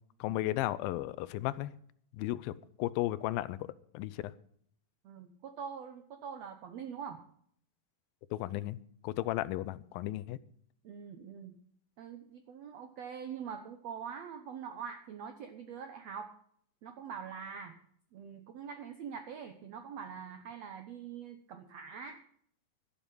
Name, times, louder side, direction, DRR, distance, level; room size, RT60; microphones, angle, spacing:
voice 1, 0.2-1.7 2.1-4.3 8.3-8.8 9.0-10.4, left 15 dB, 85° left, 17 dB, 2.4 m, -34 dB
voice 2, 5.0-7.2 10.8-11.6 12.0-16.3 16.8-17.8 18.1-22.2, right 7 dB, 80° right, 7 dB, 1.5 m, -44 dB
12.0 x 12.0 x 5.4 m, 0.64 s
omnidirectional pair, 4.1 m